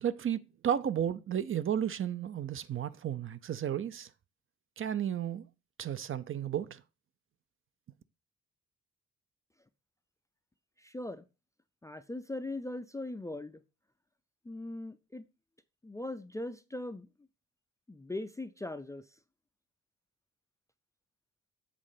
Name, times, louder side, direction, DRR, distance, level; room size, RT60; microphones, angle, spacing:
voice 1, 0.0-4.1 4.8-5.5 5.8-6.8, right 9 dB, 45° right, 0.5 m, -33 dB
voice 2, 10.8-11.3 11.8-13.6 14.4-15.2 15.8-17.1 17.9-19.1, left 2 dB, 10° left, 0.3 m, -40 dB
7.7 x 4.1 x 5.0 m
wide cardioid pair, 140°, 30 cm